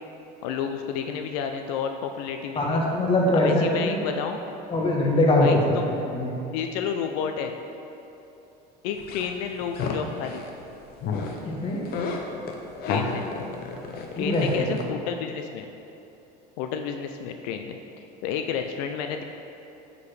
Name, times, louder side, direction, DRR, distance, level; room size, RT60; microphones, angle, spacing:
voice 1, 0.4-2.8 3.3-4.4 5.4-5.9 6.5-7.6 8.8-10.4 12.9-13.3 14.2-15.7 16.6-19.2, left 7 dB, 85° left, 5 dB, 0.4 m, -31 dB
voice 2, 2.5-4.0 4.7-6.3 11.4-11.8 14.2-14.7, left 1 dB, 25° left, -2 dB, 1.1 m, -22 dB
sound 1, 9.0-10.5 11.0-11.4 11.7-14.8, left 4 dB, 50° left, 0.7 m, -31 dB
8.1 x 4.9 x 3.3 m, 3.0 s
cardioid pair, 135°, 20 cm